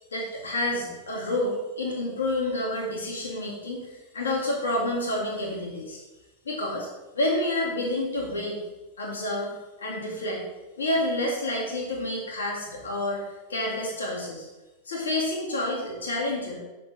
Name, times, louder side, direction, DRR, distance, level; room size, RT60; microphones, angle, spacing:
voice 1, 0.1-6.0 6.5-6.9 7.1-8.6 9.0-10.4 10.8-14.5 14.8-16.6, left 1 dB, 70° left, -3 dB, 2.2 m, -29 dB
6.2 x 4.5 x 5.7 m, 1.1 s
figure-of-eight pair, 90°, 0 cm